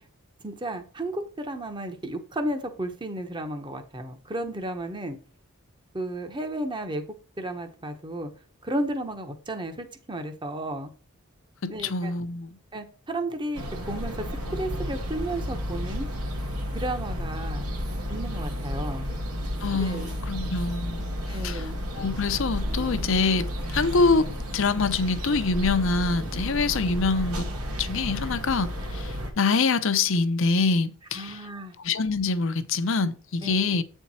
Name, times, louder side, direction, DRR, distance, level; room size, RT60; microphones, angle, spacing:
voice 1, 0.4-5.2 5.9-7.0 7.4-8.3 8.6-10.9 11.7-12.1 12.7-16.1 16.7-17.7 18.1-19.1 19.7-20.1 21.3-21.8 31.1-31.7 33.4-33.8, right 1 dB, 20° right, 0.9 m, -33 dB
voice 2, 11.6-12.6 19.6-21.1 21.4-27.5 27.8-31.4 31.8-33.8, left 4 dB, 60° left, 0.7 m, -25 dB
sound 1, 13.5-29.3, equal, 90° right, 2.1 m, -32 dB
8.3 x 4.5 x 4.1 m
head